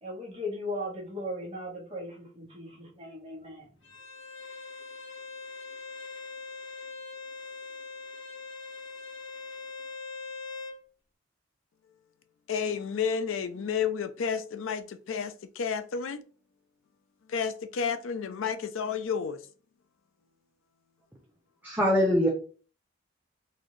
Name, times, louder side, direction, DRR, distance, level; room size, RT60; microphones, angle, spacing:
voice 1, 0.0-3.7, left 1 dB, 25° right, -3 dB, 1.3 m, -37 dB
Bowed string instrument, 3.8-10.8, left 4 dB, 65° left, 1.1 m, -42 dB
voice 2, 12.5-16.2 17.3-19.4, left 6 dB, 80° left, 9 dB, 0.4 m, -31 dB
voice 3, 21.6-22.3, equal, 10° right, -4 dB, 0.6 m, -23 dB
4.0 x 2.6 x 3.1 m, 0.39 s
head